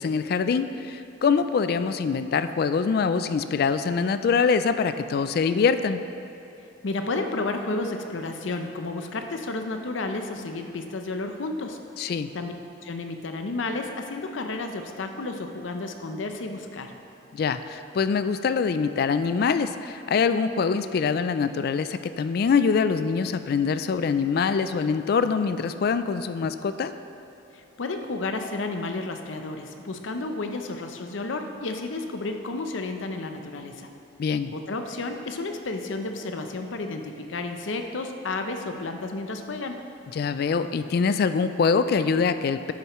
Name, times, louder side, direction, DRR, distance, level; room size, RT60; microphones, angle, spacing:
voice 1, 0.0-6.0 12.0-12.3 17.3-26.9 34.2-34.5 40.1-42.7, left 5 dB, 55° left, 11 dB, 0.3 m, -24 dB
voice 2, 6.8-11.8 12.3-12.5 12.8-16.9 27.5-33.9 34.5-39.8, left 3 dB, 85° left, 5 dB, 0.6 m, -32 dB
11.0 x 6.5 x 3.1 m, 2.8 s
head